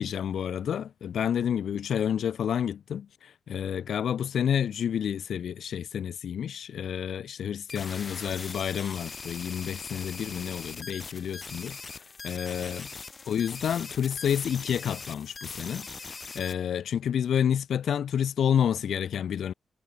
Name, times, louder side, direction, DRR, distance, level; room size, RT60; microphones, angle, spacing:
voice 1, 0.0-12.9 13.3-19.5, left 9 dB, 80° left, 1.4 m, -29 dB
sound 1, 7.7-16.5, left 4 dB, 35° left, 4.4 m, -41 dB
wide cardioid pair, 130°, 0 cm